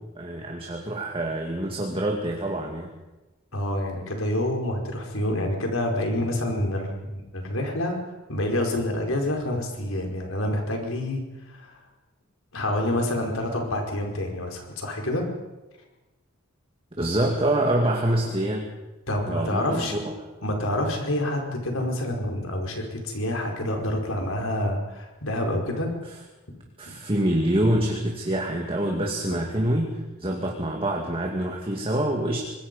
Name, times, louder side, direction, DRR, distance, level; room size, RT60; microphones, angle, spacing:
voice 1, 0.0-2.9 17.0-18.7 19.3-20.1 26.8-32.4, right 1 dB, 25° right, 0 dB, 2.3 m, -26 dB
voice 2, 3.5-8.0 8.3-11.2 11.5-11.8 12.5-15.2 19.1-20.0 20.4-25.9 26.9-27.0, left 1 dB, 80° left, 2 dB, 4.9 m, -27 dB
25.5 x 20.5 x 5.5 m, 1.1 s
head